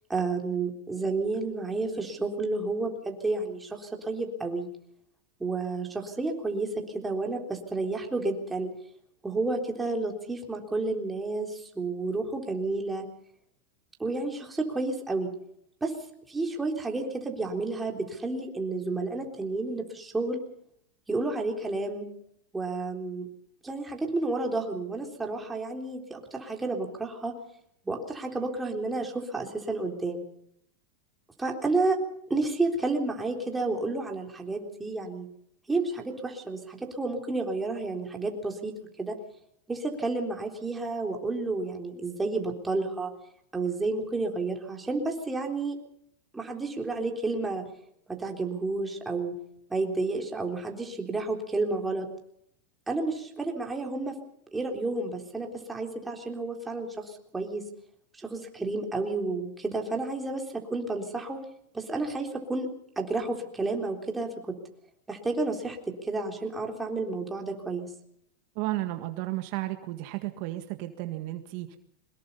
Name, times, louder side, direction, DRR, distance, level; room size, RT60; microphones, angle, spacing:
voice 1, 0.1-4.7 5.4-8.7 9.2-13.1 14.0-15.3 15.8-15.9 16.3-20.4 21.1-22.1 22.5-23.3 23.6-27.3 27.9-30.2 31.4-32.0 32.3-35.3 35.7-39.2 39.7-43.1 43.5-45.8 46.3-47.7 48.1-49.4 49.7-52.1 52.9-54.1 54.5-57.6 58.2-61.4 61.7-62.7 63.0-64.6 65.1-67.9, right 3 dB, 10° right, 2 dB, 3.7 m, -31 dB
voice 2, 68.6-71.8, right 17 dB, 55° right, 7 dB, 1.8 m, -33 dB
23.5 x 20.5 x 5.5 m, 0.72 s
supercardioid pair, 140°, 0 cm